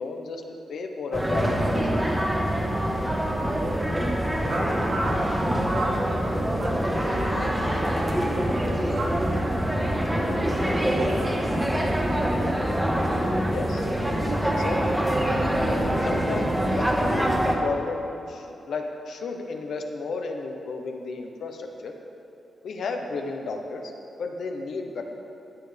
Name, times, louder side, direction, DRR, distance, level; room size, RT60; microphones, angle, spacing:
voice 1, 0.0-2.2 13.5-13.9 14.5-15.0 15.7-15.8 16.0-18.0 18.3-21.9 22.6-23.9 24.2-25.0, left 4 dB, 80° left, 3 dB, 1.1 m, -33 dB
sound 1, 1.1-17.5, equal, 10° right, 1.4 m, -25 dB
voice 2, 4.5-5.3 5.7-6.2 6.5-7.6 8.0-11.4, right 2 dB, 75° right, -5 dB, 2.7 m, -36 dB
15.5 x 9.7 x 3.5 m, 2.7 s
wide cardioid pair, 115°, 0 cm